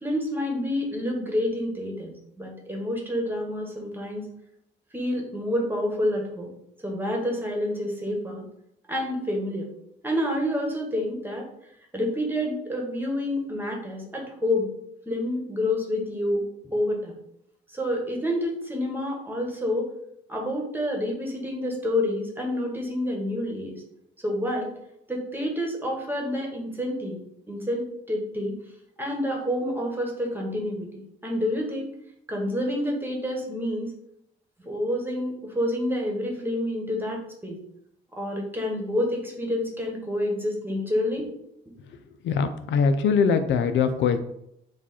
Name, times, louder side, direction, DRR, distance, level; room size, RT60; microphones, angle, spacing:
voice 1, 0.0-4.3 4.9-6.5 6.8-8.4 8.9-9.7 10.0-11.5 11.9-14.7 15.0-17.2 17.7-19.9 20.3-23.7 24.2-24.7 25.1-27.2 27.5-27.8 28.1-28.5 29.0-31.9 32.3-33.9 34.6-37.6 38.1-41.3, left 1 dB, 10° right, -1 dB, 1.3 m, -28 dB
voice 2, 42.2-44.2, left 6 dB, 70° left, 9 dB, 0.4 m, -22 dB
4.7 x 2.4 x 4.2 m, 0.76 s
cardioid pair, 90°, 20 cm